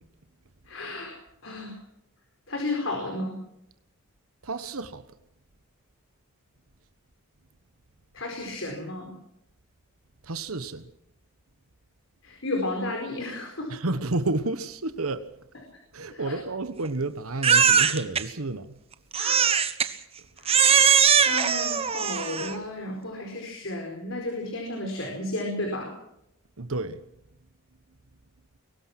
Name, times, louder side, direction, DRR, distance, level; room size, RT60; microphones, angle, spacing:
voice 1, 0.7-1.2 1.4-1.8 2.5-3.4 8.1-9.1 12.2-13.8 16.1-16.4 19.2-19.5 20.4-20.5 21.3-26.0, left 2 dB, 60° left, 4.6 m, -33 dB
voice 2, 4.4-5.0 10.2-10.9 13.7-15.2 15.9-18.8 26.6-27.0, right 2 dB, 75° right, 1.3 m, -30 dB
Crying sobbing, 17.4-18.2 19.1-19.9 20.5-22.6, right 7 dB, 25° right, 1.1 m, -20 dB
23.0 x 19.0 x 6.1 m
head